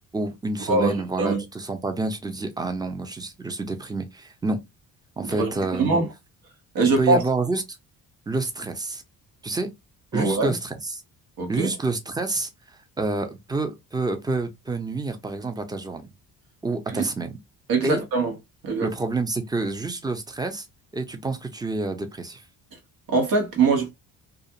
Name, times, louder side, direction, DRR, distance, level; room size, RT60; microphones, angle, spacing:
voice 1, 0.1-4.7 5.2-6.0 6.8-7.6 8.3-9.0 9.4-9.7 10.1-11.0 11.5-12.5 13.0-16.1 16.6-17.3 17.8-18.0 18.8-20.7 20.9-22.4, right 3 dB, 10° right, 0.6 m, -28 dB
voice 2, 5.2-6.1 6.7-7.2 10.1-10.5 11.4-11.7 16.9-17.0 17.7-18.3 18.6-18.9 23.1-23.9, right 3 dB, 65° right, 1.2 m, -22 dB
2.4 x 2.4 x 2.8 m
cardioid pair, 80°, 39 cm